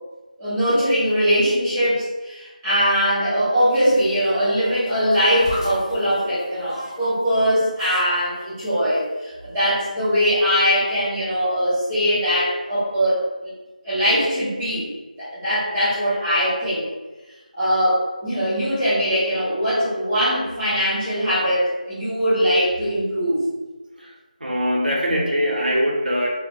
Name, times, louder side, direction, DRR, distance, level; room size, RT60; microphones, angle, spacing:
voice 1, 0.4-13.5 13.8-14.9 15.2-16.9 17.5-23.4, equal, 5° right, -14 dB, 0.3 m, -21 dB
sound 1, 3.7-7.1 7.4-8.6 9.4-9.5, left 1 dB, 25° left, 0.9 m, -35 dB
voice 2, 24.4-26.3, equal, 90° right, -2 dB, 0.7 m, -22 dB
2.1 x 2.0 x 2.8 m, 1.2 s
figure-of-eight pair, 170°, 5 cm